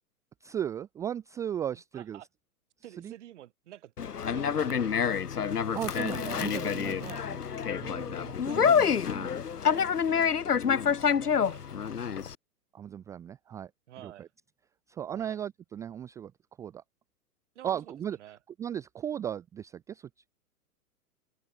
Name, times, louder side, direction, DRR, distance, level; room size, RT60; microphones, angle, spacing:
voice 1, 0.4-2.2 3.0-3.1 5.7-7.4 7.8-9.3 12.7-13.7 14.0-14.3 14.9-16.3 16.6-16.8 17.6-18.2 18.6-20.1, right 9 dB, 5° right, 0.6 m, -36 dB
voice 2, 1.7-2.3 2.8-3.9 4.3-5.3 7.0-7.3 8.4-8.9 9.6-12.3 13.9-14.3 15.1-15.4 17.5-17.9 18.2-18.4, right 13 dB, 50° right, 2.7 m, -50 dB
Conversation, 4.0-12.3, left 7 dB, 75° left, 1.1 m, -27 dB
open air
figure-of-eight pair, 115°, 47 cm